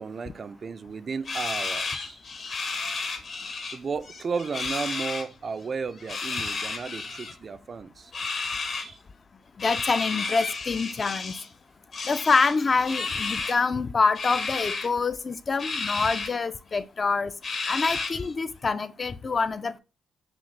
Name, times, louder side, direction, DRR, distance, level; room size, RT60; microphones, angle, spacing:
voice 1, 0.0-2.2 3.7-9.0, right 5 dB, 45° right, 0.3 m, -34 dB
sound 1, 1.2-3.8 4.0-5.2 6.0-7.3 8.1-8.9 9.6-11.5 11.9-13.6 14.1-14.9 15.6-16.3 16.7-16.8 17.4-18.3, left 4 dB, 55° left, 1.0 m, -32 dB
voice 2, 9.6-11.3 12.1-17.3 17.7-19.8, left 4 dB, 35° left, 0.3 m, -26 dB
6.0 x 2.3 x 3.2 m
cardioid pair, 100°, 0 cm